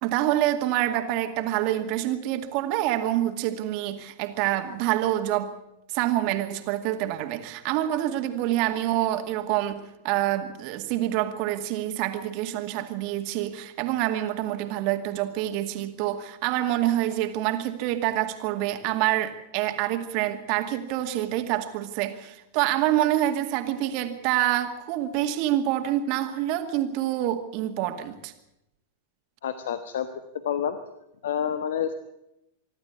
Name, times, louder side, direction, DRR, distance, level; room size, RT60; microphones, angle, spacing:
voice 1, 0.0-5.5 5.9-28.3, right 13 dB, 50° right, 7 dB, 2.2 m, -26 dB
voice 2, 29.4-30.1 30.4-30.8 31.2-31.9, left 9 dB, 70° left, 11 dB, 1.2 m, -28 dB
25.0 x 12.0 x 8.4 m, 0.87 s
hypercardioid pair, 100°, 0 cm